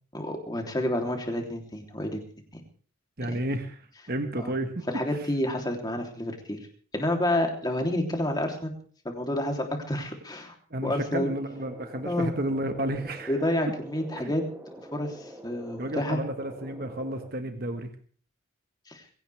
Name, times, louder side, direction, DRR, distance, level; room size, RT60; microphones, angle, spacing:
voice 1, 0.1-2.2 2.5-2.6 3.3-3.4 4.4-4.5 4.9-6.6 6.9-8.7 9.0-10.5 10.8-11.3 12.0-12.3 13.3-14.4 14.9-16.2 18.9-19.0, left 1 dB, 20° left, 3 dB, 3.3 m, -29 dB
voice 2, 3.2-3.8 4.1-4.9 5.1-5.2 10.7-13.4 14.2-14.3 15.8-17.9, right 1 dB, 50° right, 6 dB, 1.5 m, -32 dB
sound 1, 11.5-17.3, equal, 10° right, 2.6 m, -45 dB
22.0 x 17.0 x 3.5 m, 0.43 s
head